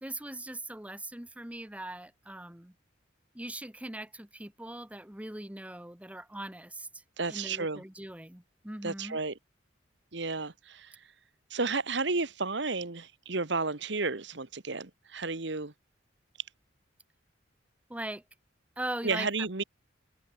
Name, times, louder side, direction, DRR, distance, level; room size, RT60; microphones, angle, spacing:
voice 1, 0.0-2.7 3.3-7.0 7.3-9.2 17.9-18.2 18.8-19.6, right 1 dB, 5° right, 1.1 m, -40 dB
voice 2, 7.2-7.8 8.8-9.3 10.1-11.0 11.5-15.7 19.0-19.6, right 3 dB, 65° right, 1.5 m, -32 dB
head